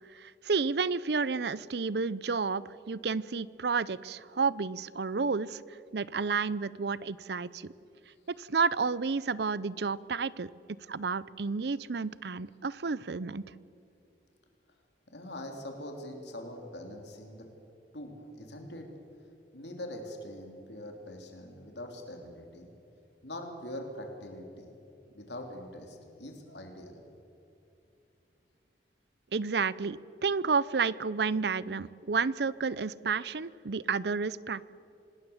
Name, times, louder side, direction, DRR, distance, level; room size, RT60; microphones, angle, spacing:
voice 1, 0.1-5.6 5.9-7.7 8.4-10.5 10.9-13.4 29.3-34.7, right 5 dB, 65° right, 19 dB, 0.6 m, -31 dB
voice 2, 15.1-17.5 17.9-18.9 19.5-22.7 23.2-24.7 25.1-27.0, left 1 dB, 75° left, 3 dB, 3.3 m, -43 dB
26.0 x 19.0 x 7.2 m, 2.8 s
head